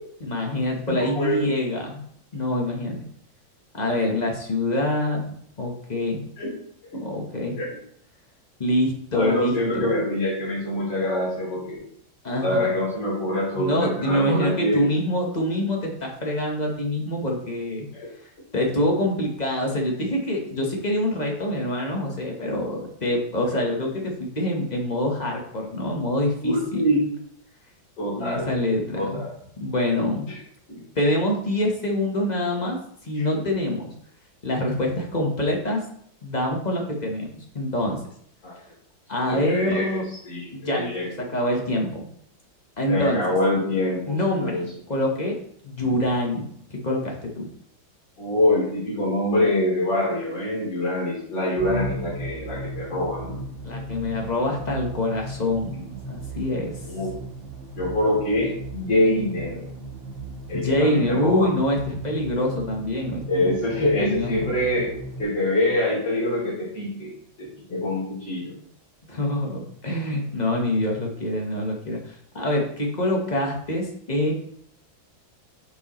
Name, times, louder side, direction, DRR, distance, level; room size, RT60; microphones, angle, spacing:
voice 1, 0.2-2.0 2.3-3.0 3.7-6.2 7.0-7.6 8.6-9.9 12.2-12.7 13.5-17.9 18.5-26.8 28.1-29.2 29.6-30.3 31.0-32.8 33.0-33.9 34.4-35.8 36.2-37.3 37.5-38.0 39.1-40.0 40.5-42.1 42.8-43.2 44.1-45.4 45.6-47.5 53.6-56.7 60.5-63.2 63.8-64.5 69.1-74.3, left 1 dB, 30° left, 0 dB, 0.8 m, -25 dB
voice 2, 0.9-1.5 6.4-6.5 6.9-7.0 7.6-7.7 9.1-11.8 12.4-14.8 17.9-18.1 26.4-27.1 28.0-28.5 28.9-29.3 30.3-30.4 33.1-33.2 38.4-38.6 39.2-40.0 40.2-41.1 42.9-44.7 48.2-53.4 56.8-57.1 57.8-59.7 60.5-61.5 63.3-64.9 65.2-67.1 67.4-68.5, left 1 dB, 75° left, -7 dB, 3.6 m, -25 dB
sound 1, 51.6-65.2, right 2 dB, 80° right, 2.1 m, -36 dB
8.1 x 4.6 x 3.0 m, 0.65 s
omnidirectional pair, 2.1 m